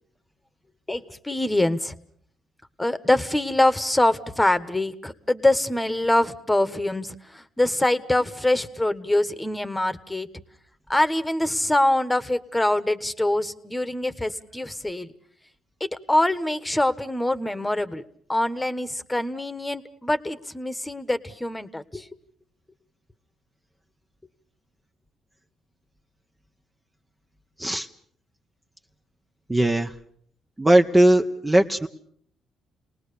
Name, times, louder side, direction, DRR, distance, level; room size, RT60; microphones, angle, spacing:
voice 1, 0.9-1.9 2.8-10.3 10.9-15.1 15.8-18.0 18.3-22.1, left 1 dB, 10° left, 11 dB, 1.4 m, -24 dB
voice 2, 29.5-29.9 30.6-31.9, right 1 dB, 15° right, 4 dB, 1.0 m, -19 dB
29.0 x 19.5 x 6.9 m, 0.62 s
cardioid pair, 90°, 0 cm